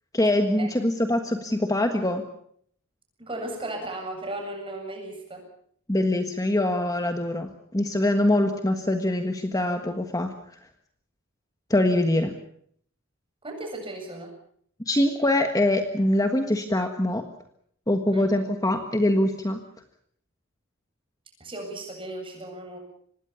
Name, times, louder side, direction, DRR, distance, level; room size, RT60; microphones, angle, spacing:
voice 1, 0.1-2.3 5.9-7.5 7.7-10.3 11.7-12.3 14.9-17.2 17.9-19.6, left 1 dB, 15° left, 6 dB, 1.5 m, -23 dB
voice 2, 3.2-5.4 13.4-14.3 18.1-18.3 21.4-22.8, right 1 dB, 25° right, 3 dB, 7.6 m, -36 dB
25.5 x 20.0 x 7.0 m, 0.64 s
head